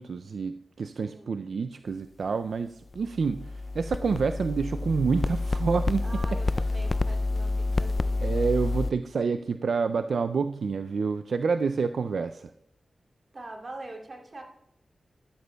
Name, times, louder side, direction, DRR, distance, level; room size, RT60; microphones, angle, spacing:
voice 1, 0.0-6.0 8.2-12.5, right 5 dB, 80° right, 9 dB, 0.3 m, -28 dB
voice 2, 1.0-1.4 6.0-8.3 13.3-14.4, right 2 dB, 50° right, 1 dB, 2.6 m, -43 dB
sound 1, 2.9-8.9, left 2 dB, 45° left, 0.4 m, -28 dB
14.5 x 12.5 x 2.2 m, 0.81 s
wide cardioid pair, 70°, 0 cm